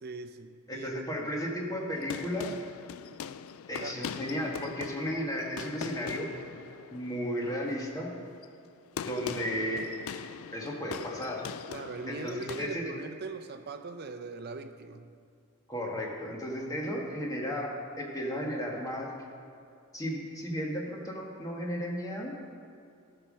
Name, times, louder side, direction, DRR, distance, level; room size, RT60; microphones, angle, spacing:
voice 1, 0.0-1.3 3.7-4.1 11.7-15.1, right 3 dB, 50° right, 8 dB, 0.6 m, -41 dB
voice 2, 0.7-2.5 3.7-6.3 6.9-8.1 9.0-9.9 10.5-11.4 12.1-12.8 15.7-19.1 19.9-22.4, equal, 15° left, -2 dB, 1.6 m, -34 dB
sound 1, 1.8-12.7, left 7 dB, 70° left, 0.3 m, -42 dB
13.5 x 5.8 x 6.3 m, 2.5 s
head